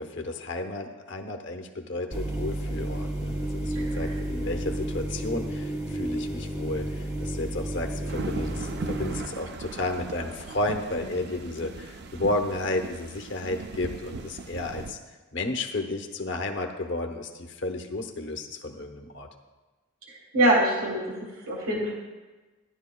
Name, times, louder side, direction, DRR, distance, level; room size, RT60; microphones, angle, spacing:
voice 1, 0.0-15.0 15.3-19.3, left 2 dB, 55° left, 4 dB, 0.9 m, -32 dB
sound 1, 2.1-9.2, right 1 dB, 15° right, 0.8 m, -31 dB
voice 2, 3.7-4.1 20.1-21.0 21.5-21.9, right 1 dB, 70° right, -2 dB, 1.5 m, -24 dB
sound 2, 8.1-14.9, right 4 dB, 50° right, 0.5 m, -39 dB
14.5 x 10.5 x 2.3 m, 1.2 s
head